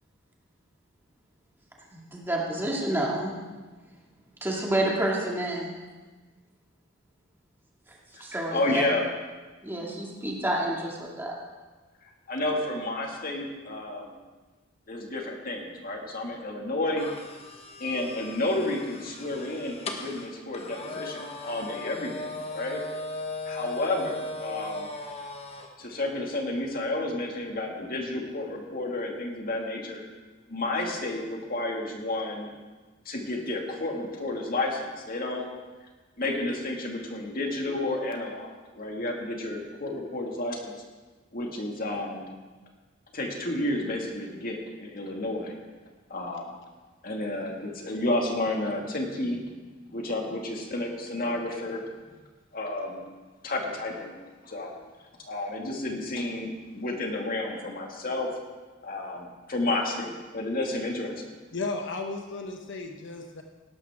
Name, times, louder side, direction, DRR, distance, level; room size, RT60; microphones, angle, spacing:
voice 1, 1.9-3.3 4.4-5.7 8.2-8.8 9.6-11.3, right 1 dB, 10° right, -3 dB, 2.3 m, -29 dB
voice 2, 8.5-9.1 12.3-14.2 14.9-17.1 17.8-22.8 23.5-24.9 25.8-30.0 30.5-32.5 33.1-35.5 36.2-40.8 41.3-42.3 43.1-45.6 46.1-46.5 47.0-49.4 49.9-51.8 52.5-53.0 53.4-54.1 54.4-54.7 55.2-58.3 58.8-61.3, left 2 dB, 45° left, 1 dB, 2.1 m, -31 dB
sound 1, 17.0-25.7, left 2 dB, 30° left, 1.2 m, -38 dB
voice 3, 61.5-63.4, left 3 dB, 65° left, 3 dB, 1.0 m, -34 dB
17.5 x 12.5 x 3.6 m, 1.3 s
head